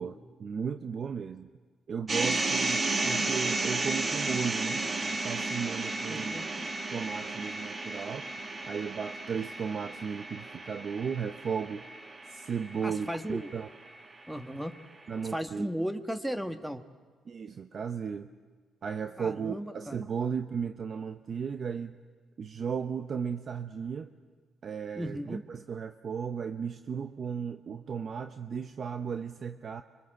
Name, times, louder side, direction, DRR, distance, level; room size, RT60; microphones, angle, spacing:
voice 1, 0.0-1.5 1.9-4.9 5.2-6.4 6.9-8.3 8.7-11.8 12.3-13.7 15.1-15.7 17.3-18.3 18.8-22.0 22.4-24.1 24.6-29.8, right 6 dB, 50° right, 9 dB, 0.8 m, -35 dB
sound 1, 2.1-14.2, right 3 dB, 35° right, 1.8 m, -33 dB
voice 2, 3.0-3.3 6.1-6.7 12.8-13.5 14.3-14.7 15.3-16.8 19.2-20.0 24.9-25.4, equal, 5° right, 8 dB, 1.4 m, -36 dB
26.0 x 24.0 x 7.7 m, 1.5 s
cardioid pair, 90°, 0 cm